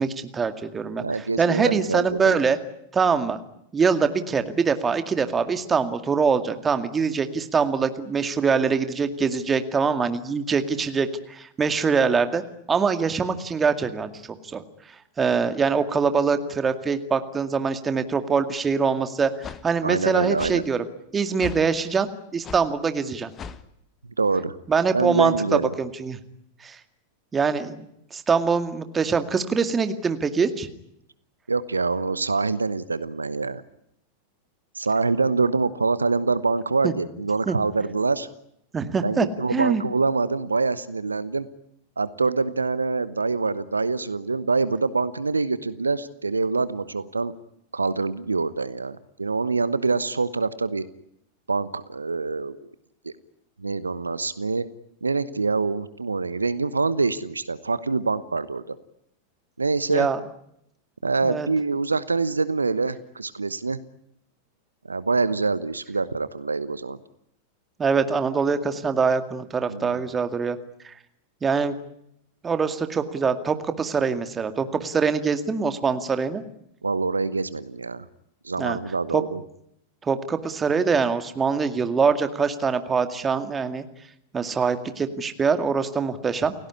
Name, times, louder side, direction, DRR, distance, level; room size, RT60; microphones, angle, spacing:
voice 1, 0.0-1.0 1.4-2.6 2.9-3.4 3.7-12.4 12.7-14.1 14.5-14.6 15.2-20.8 21.1-23.3 24.7-25.3 25.8-26.2 26.6-26.8 27.3-30.7 36.8-36.9 37.5-37.6 38.7-39.3 39.5-39.8 59.9-60.2 61.2-61.5 67.8-70.6 70.8-70.9 71.4-71.7 72.4-76.4 78.6-78.8 79.1-79.2 80.1-83.8 84.3-86.5, right 5 dB, 20° right, 9 dB, 2.1 m, -23 dB
voice 2, 1.0-2.4 19.8-20.6 24.2-24.5 24.9-25.7 31.5-33.6 34.7-38.3 39.0-41.5 42.0-47.3 47.7-50.8 51.5-52.6 53.0-53.1 53.6-54.7 55.0-58.7 59.6-60.1 61.0-63.8 64.9-67.0 69.7-70.0 76.8-78.0 78.4-79.4, right 4 dB, 80° right, 16 dB, 1.0 m, -25 dB
sound 1, 18.6-18.7 19.4-19.6 20.4-20.6 21.4-21.7 22.4-22.7 23.3-23.6, left 6 dB, 25° left, 1.5 m, -37 dB
29.5 x 17.0 x 9.8 m, 0.77 s
figure-of-eight pair, 90°, 0 cm